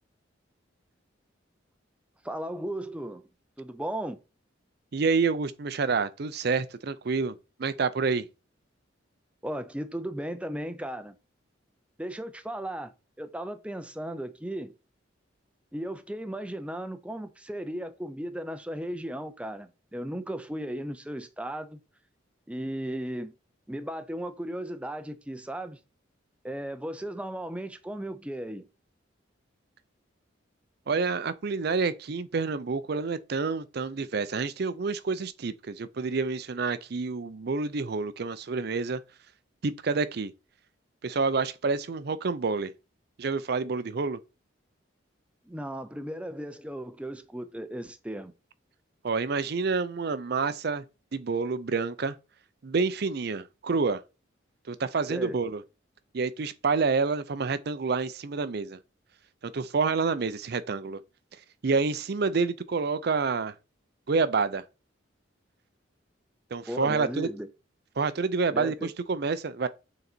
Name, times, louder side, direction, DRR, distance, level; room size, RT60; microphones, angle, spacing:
voice 1, 2.2-3.3 3.6-4.2 9.4-11.2 12.0-12.9 13.2-14.7 15.7-21.8 22.5-23.3 23.7-25.8 26.4-28.7 45.5-48.3 55.1-55.4 66.7-67.5 68.5-68.9, right 1 dB, 5° right, 0.5 m, -36 dB
voice 2, 4.9-8.3 30.9-39.0 39.6-40.3 41.0-42.7 43.2-44.2 49.0-50.8 51.1-52.2 52.6-54.0 54.7-55.6 56.1-58.8 59.4-61.0 61.6-63.5 64.1-64.6 66.5-67.3 68.0-69.7, right 4 dB, 55° right, 0.5 m, -28 dB
6.6 x 4.0 x 4.4 m
head